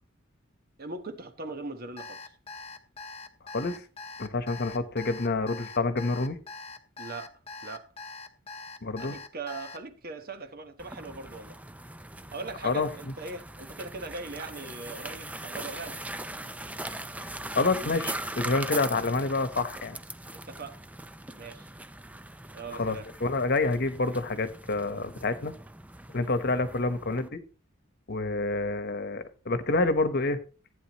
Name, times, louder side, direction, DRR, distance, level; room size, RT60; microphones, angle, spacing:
voice 1, 0.8-2.2 7.0-7.9 9.0-11.6 12.3-16.0 20.3-20.8 21.3-21.7 22.5-23.1, right 3 dB, 45° right, 1.1 m, -40 dB
Alarm, 2.0-9.8, left 3 dB, 30° left, 1.0 m, -43 dB
voice 2, 4.2-6.4 8.8-9.2 12.6-12.9 17.2-17.3 17.5-20.0 22.8-25.5 26.1-27.4 28.1-30.4, left 3 dB, 50° left, 1.1 m, -28 dB
sound 1, 10.8-27.3, right 1 dB, 5° right, 0.5 m, -41 dB
15.0 x 9.2 x 3.0 m
head